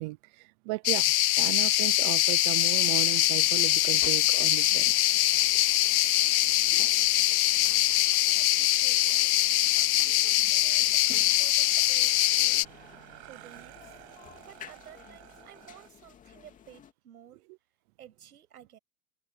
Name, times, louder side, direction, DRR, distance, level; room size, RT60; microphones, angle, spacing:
voice 1, 0.0-4.9 6.7-6.8, right 23 dB, 30° right, 0.6 m, -35 dB
sound 1, 0.8-12.6, left 15 dB, 70° left, 0.9 m, -23 dB
sound 2, 0.8-15.9, right 22 dB, 50° right, 5.7 m, -57 dB
sound 3, 2.7-16.9, left 9 dB, 15° left, 2.4 m, -52 dB
voice 2, 8.1-9.3 9.7-12.7 13.2-14.0 14.5-17.5 18.0-18.8, right 10 dB, 80° right, 7.8 m, -53 dB
hypercardioid pair, 145°, 44 cm